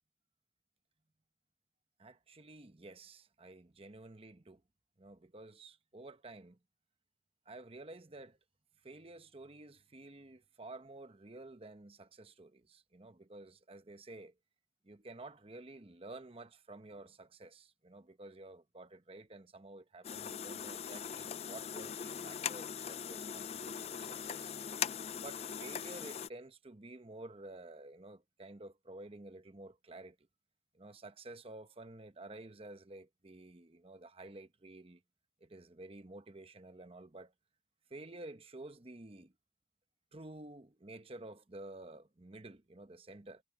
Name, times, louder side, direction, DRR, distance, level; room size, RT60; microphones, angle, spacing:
voice 1, 2.0-4.6 5.0-6.6 7.5-8.4 8.8-14.3 14.8-24.5 25.2-30.2 30.7-35.0 35.4-37.3 37.9-39.3 40.1-43.4, right 2 dB, 30° right, 0.9 m, -51 dB
sound 1, 20.0-26.3, left 8 dB, 35° left, 0.4 m, -41 dB
head